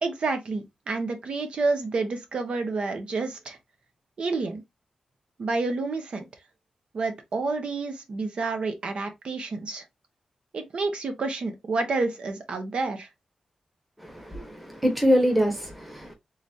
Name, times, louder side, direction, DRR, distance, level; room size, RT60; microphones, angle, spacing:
voice 1, 0.0-3.6 4.2-4.6 5.4-6.2 6.9-9.8 10.5-13.1, right 3 dB, 60° right, 0.9 m, -29 dB
voice 2, 14.0-16.1, equal, 5° right, 1.1 m, -24 dB
3.9 x 3.2 x 2.6 m
wide cardioid pair, 135°, 2 cm